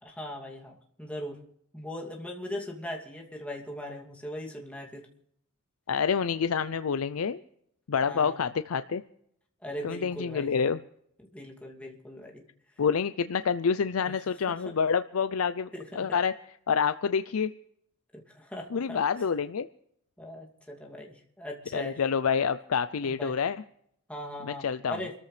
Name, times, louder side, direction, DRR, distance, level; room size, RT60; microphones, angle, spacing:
voice 1, 0.0-1.4 1.7-5.0 8.0-8.4 9.6-10.5 11.3-12.4 14.0-14.1 14.6-14.7 15.7-16.1 18.1-19.0 20.2-22.0 23.0-23.4 24.1-25.1, left 1 dB, 5° left, -1 dB, 2.5 m, -39 dB
voice 2, 5.9-7.4 7.9-9.0 9.8-10.8 12.8-15.7 16.0-16.3 16.7-17.5 18.7-19.7 21.7-23.6 24.4-25.0, left 6 dB, 80° left, 12 dB, 0.5 m, -27 dB
27.5 x 14.0 x 3.3 m, 0.71 s
head